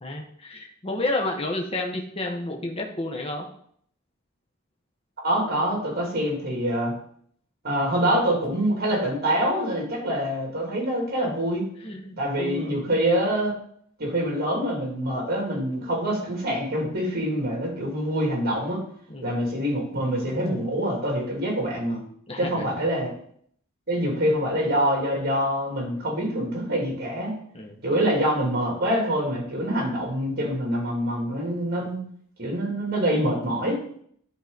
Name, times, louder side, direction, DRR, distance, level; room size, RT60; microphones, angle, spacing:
voice 1, 0.0-3.5 11.8-12.8 19.1-19.3 22.3-22.7 27.5-27.8 31.8-31.9, left 2 dB, 25° left, 1 dB, 0.9 m, -31 dB
voice 2, 5.2-6.9 7.6-11.6 12.2-13.5 14.0-18.8 19.2-22.0 22.4-23.1 23.9-27.4 27.8-32.0 32.4-33.8, equal, 45° right, -1 dB, 2.5 m, -25 dB
10.5 x 3.9 x 3.9 m, 0.64 s
head